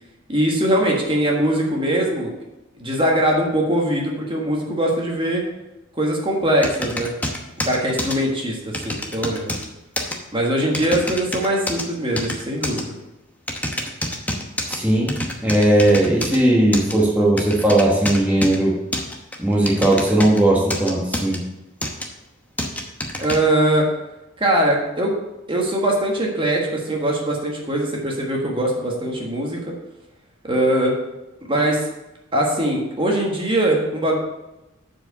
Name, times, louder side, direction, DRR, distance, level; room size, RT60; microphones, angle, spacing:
voice 1, 0.3-2.3 2.7-5.4 6.0-7.1 7.6-9.5 10.3-12.9 23.2-23.9 24.4-25.2 25.5-29.6 30.4-30.9 31.5-31.9 32.3-34.1, right 1 dB, 25° right, -1 dB, 1.5 m, -21 dB
Keyboard typing numbers, 6.6-8.2 8.7-9.7 10.0-10.2 10.7-11.8 12.2-12.8 13.5-14.8 15.1-16.4 16.7-16.9 17.4-18.6 18.9-20.4 20.7-21.4 21.8-22.1 22.6-23.4, left 1 dB, 10° left, 0.9 m, -27 dB
voice 2, 14.7-15.1 15.4-18.7 19.4-21.4, right 1 dB, 10° right, -5 dB, 1.4 m, -17 dB
7.7 x 4.8 x 6.7 m, 0.97 s
head